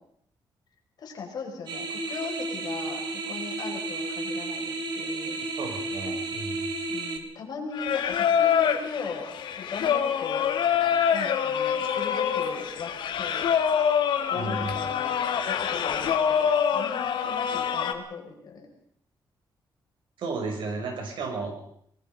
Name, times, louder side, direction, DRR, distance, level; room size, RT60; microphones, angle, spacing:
voice 1, 1.0-5.4 6.9-9.3 9.6-10.5 11.1-12.9 13.2-13.4 14.3-15.1 15.5-18.7, left 5 dB, 55° left, 1 dB, 5.6 m, -38 dB
sound 1, 1.7-7.2, right 3 dB, 65° right, 2.7 m, -32 dB
voice 2, 5.6-6.6 14.3-14.8 20.2-21.6, right 3 dB, 80° right, 3 dB, 5.9 m, -33 dB
Singing, 7.7-17.9, left 8 dB, 80° left, 2.0 m, -25 dB
24.5 x 20.5 x 5.2 m, 0.67 s
wide cardioid pair, 165°, 8 cm